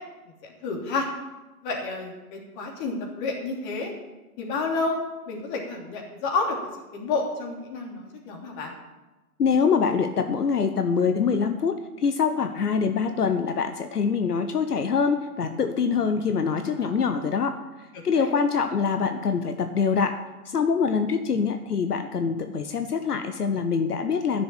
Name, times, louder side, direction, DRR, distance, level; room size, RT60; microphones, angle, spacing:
voice 1, 0.4-1.1 1.6-3.9 4.4-5.0 5.3-6.6 6.9-8.7 16.8-17.0 18.1-18.3, left 3 dB, 30° left, 0 dB, 3.1 m, -30 dB
voice 2, 9.4-17.5 18.0-20.2 20.4-24.4, left 5 dB, 80° left, 7 dB, 1.1 m, -24 dB
11.0 x 6.9 x 9.1 m, 1.1 s
hypercardioid pair, 130°, 46 cm